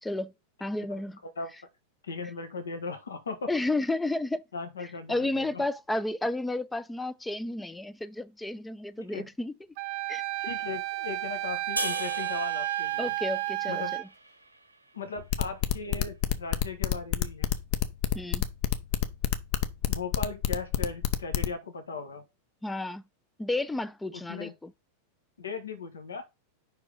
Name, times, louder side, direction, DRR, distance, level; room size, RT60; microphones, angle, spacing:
voice 1, 0.0-0.3 0.6-1.2 3.5-4.4 4.8-9.5 10.1-10.2 13.0-13.8 18.1-18.4 22.6-23.0 23.4-24.7, left 2 dB, 5° left, 0.4 m, -32 dB
voice 2, 0.9-1.5 2.0-3.5 4.5-5.6 9.1-9.3 10.4-13.1 13.7-13.9 14.9-17.5 19.9-22.2 24.1-24.5 25.4-26.2, left 4 dB, 70° left, 1.3 m, -38 dB
Wind instrument woodwind instrument, 9.8-14.0, right 17 dB, 45° right, 0.5 m, -32 dB
sound 1, 11.8-15.0, right 2 dB, 85° right, 0.9 m, -38 dB
sound 2, 15.2-21.5, left 11 dB, 45° left, 0.7 m, -27 dB
5.3 x 4.8 x 4.9 m
figure-of-eight pair, 90°, 0 cm